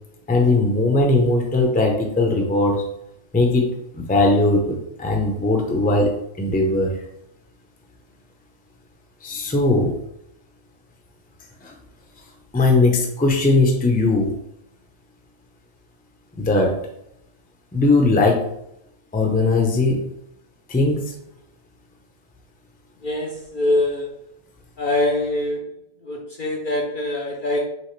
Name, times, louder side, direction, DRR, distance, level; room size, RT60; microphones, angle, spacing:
voice 1, 0.3-2.8 3.3-3.6 4.0-6.1 6.4-6.9 9.2-9.9 11.6-11.7 12.5-14.4 16.4-16.8 17.7-18.4 19.1-20.0 20.7-21.0, left 2 dB, 10° left, 1 dB, 0.5 m, -19 dB
voice 2, 23.0-24.1 24.8-25.7 26.0-27.7, left 1 dB, 50° left, -1 dB, 0.7 m, -23 dB
6.1 x 2.5 x 3.2 m, 0.79 s
omnidirectional pair, 1.3 m